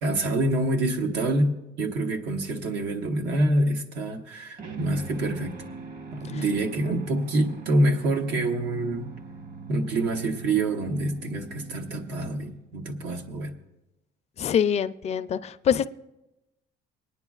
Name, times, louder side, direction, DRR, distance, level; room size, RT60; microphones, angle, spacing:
voice 1, 0.0-5.6 6.1-9.1 9.7-13.5, right 1 dB, 90° right, 3 dB, 1.1 m, -26 dB
sound 1, 4.6-12.8, right 4 dB, 55° right, 1.2 m, -42 dB
voice 2, 14.4-15.9, left 8 dB, 40° left, 13 dB, 0.4 m, -24 dB
25.5 x 9.9 x 2.4 m, 0.97 s
cardioid pair, 110°, 17 cm